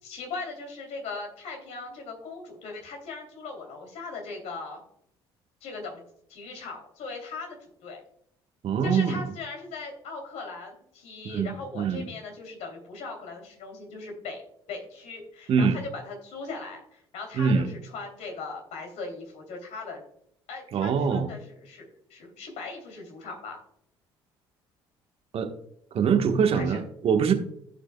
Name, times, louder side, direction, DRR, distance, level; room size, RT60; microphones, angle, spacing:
voice 1, 0.0-4.8 5.6-6.0 6.3-8.0 8.8-14.4 14.7-20.0 20.5-21.8 22.1-23.6 26.5-26.8, left 3 dB, 65° left, 3 dB, 3.0 m, -39 dB
voice 2, 8.6-9.2 11.2-11.5 11.7-12.0 15.5-15.8 17.3-17.7 20.7-21.3 25.3-25.5 25.9-27.3, right 6 dB, 50° right, 6 dB, 1.3 m, -23 dB
15.5 x 5.8 x 2.2 m, 0.71 s
hypercardioid pair, 55°, 12 cm